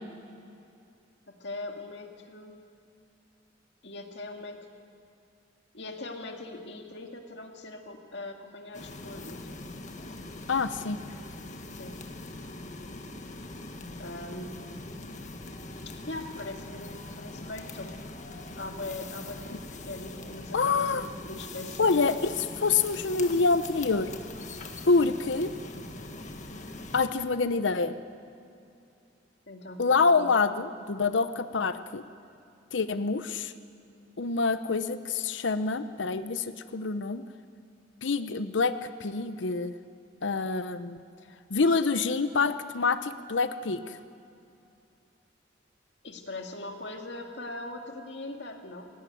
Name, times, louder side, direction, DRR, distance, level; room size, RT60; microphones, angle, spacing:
voice 1, 1.3-2.6 3.8-4.7 5.7-9.4 11.7-12.0 14.0-14.6 15.9-17.9 18.6-22.0 29.5-29.8 30.2-30.3 46.0-48.9, left 2 dB, 70° left, 3 dB, 2.2 m, -41 dB
sound 1, 8.7-27.1, left 2 dB, 45° left, 1.6 m, -42 dB
voice 2, 10.5-11.0 20.5-21.1 21.8-24.1 24.9-25.5 26.9-28.0 29.8-32.0 32.7-33.5 34.2-37.2 38.0-38.7 39.0-39.7 40.2-41.0 41.5-44.0, left 4 dB, 90° left, 11 dB, 0.8 m, -26 dB
19.0 x 17.0 x 9.2 m, 2.6 s
head